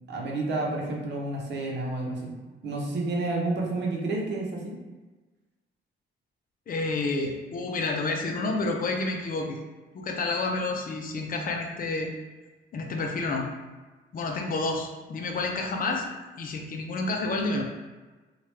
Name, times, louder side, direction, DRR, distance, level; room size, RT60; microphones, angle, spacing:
voice 1, 0.1-2.3 2.6-4.8, right 2 dB, 60° right, -1 dB, 0.8 m, -30 dB
voice 2, 6.7-9.6 9.9-12.1 12.7-13.5 14.1-16.0 16.4-17.6, left 3 dB, 45° left, 2 dB, 0.6 m, -29 dB
3.1 x 2.4 x 3.1 m, 1.2 s
cardioid pair, 90°, 20 cm